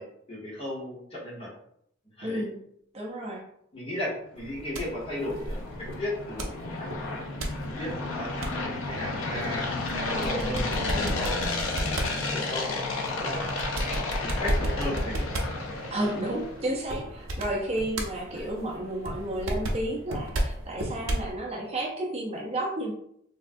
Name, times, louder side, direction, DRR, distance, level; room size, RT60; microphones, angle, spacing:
voice 1, 0.0-1.5 2.2-2.4 3.7-5.6 6.0-7.2 7.8-11.4 12.3-13.5 14.2-15.3 18.3-18.5, left 1 dB, 30° left, -4 dB, 0.9 m, -36 dB
voice 2, 2.2-2.6 2.9-3.4 15.9-22.9, right 1 dB, 30° right, -2 dB, 0.5 m, -32 dB
sound 1, 4.4-16.7, left 3 dB, 80° left, 0.5 m, -32 dB
sound 2, 4.4-21.3, right 1 dB, 80° right, 0.6 m, -34 dB
3.4 x 2.2 x 2.5 m, 0.71 s
head